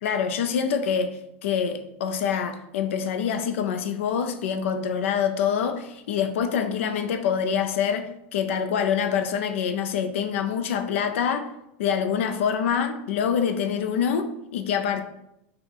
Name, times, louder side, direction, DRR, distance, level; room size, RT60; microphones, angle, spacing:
voice 1, 0.0-11.4 11.8-15.0, left 7 dB, 85° left, 7 dB, 0.4 m, -25 dB
4.1 x 2.2 x 3.3 m, 0.82 s
supercardioid pair, 125°, 7 cm